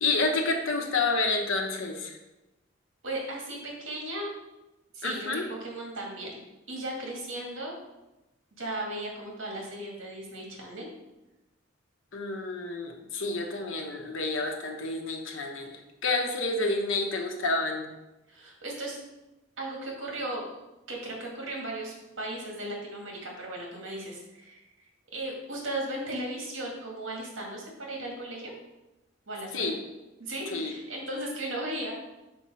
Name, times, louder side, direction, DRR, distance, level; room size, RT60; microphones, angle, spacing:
voice 1, 0.0-2.2 5.0-5.4 12.1-17.9 29.5-29.7 30.5-30.7, left 3 dB, 80° left, 3 dB, 1.0 m, -29 dB
voice 2, 3.0-4.3 4.9-6.4 6.7-7.8 8.6-10.9 18.3-19.0 19.6-20.4 20.9-24.7 25.1-28.5 29.3-29.7 30.2-31.9, right 1 dB, 80° right, -1 dB, 1.9 m, -36 dB
5.3 x 4.4 x 5.4 m, 1.0 s
head